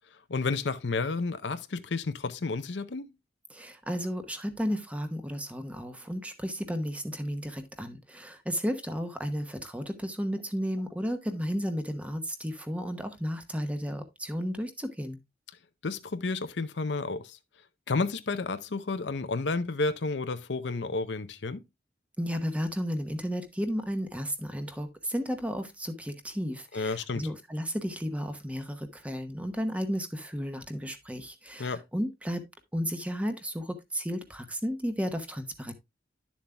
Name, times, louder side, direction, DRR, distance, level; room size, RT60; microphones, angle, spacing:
voice 1, 0.3-3.1 15.8-17.4 17.9-21.6 26.7-27.3 31.6-31.8, left 3 dB, 70° left, 0.7 m, -31 dB
voice 2, 3.5-15.2 22.2-32.4 32.7-35.7, equal, 10° right, 1.0 m, -33 dB
11.0 x 7.2 x 2.2 m
head